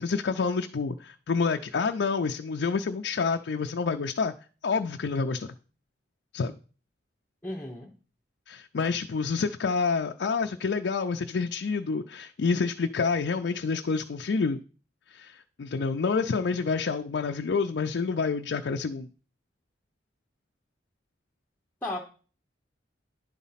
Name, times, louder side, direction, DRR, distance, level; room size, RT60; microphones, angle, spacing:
voice 1, 0.0-4.3 4.6-5.5 6.3-6.5 8.5-14.6 15.1-19.1, left 4 dB, 75° left, 0.4 m, -28 dB
voice 2, 7.4-7.9 21.8-22.0, left 1 dB, 10° left, 0.9 m, -34 dB
10.5 x 4.1 x 5.7 m
head